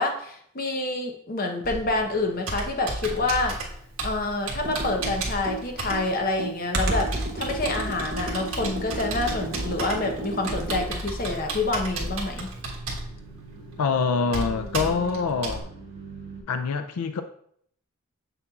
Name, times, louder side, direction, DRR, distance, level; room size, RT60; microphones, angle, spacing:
voice 1, 0.0-3.6 4.0-12.5, left 2 dB, 40° left, 3 dB, 0.8 m, -27 dB
Computer keyboard, 1.6-15.6, right 2 dB, 70° right, 1.5 m, -34 dB
Computer keyboard 2, 4.5-11.4, right 1 dB, 45° right, 1.0 m, -32 dB
sound 1, 6.9-16.4, right 3 dB, 20° right, 2.0 m, -45 dB
voice 2, 13.8-15.7 16.5-17.2, left 5 dB, 85° left, 9 dB, 0.4 m, -25 dB
7.2 x 6.7 x 2.4 m, 0.66 s
head